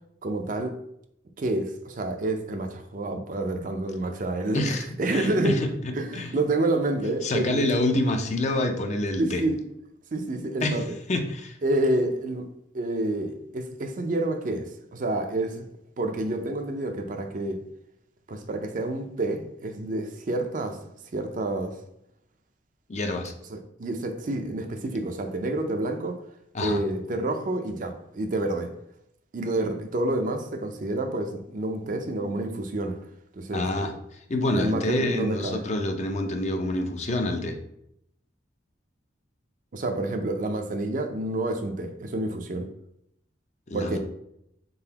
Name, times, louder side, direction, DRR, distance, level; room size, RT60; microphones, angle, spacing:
voice 1, 0.2-0.7 1.4-4.6 5.0-7.7 9.2-9.6 10.1-10.9 11.6-12.5 12.7-15.7 16.0-17.6 18.3-21.8 23.5-26.2 26.6-28.7 29.3-33.0 33.3-33.6 34.6-35.6 39.7-42.7 43.7-44.0, right 2 dB, 45° right, 6 dB, 0.4 m, -28 dB
voice 2, 4.5-6.3 7.2-9.4 10.6-11.6 22.9-23.3 26.5-26.8 33.5-37.6 43.7-44.0, left 1 dB, 35° left, 4 dB, 0.5 m, -27 dB
3.9 x 3.7 x 2.8 m, 0.76 s
head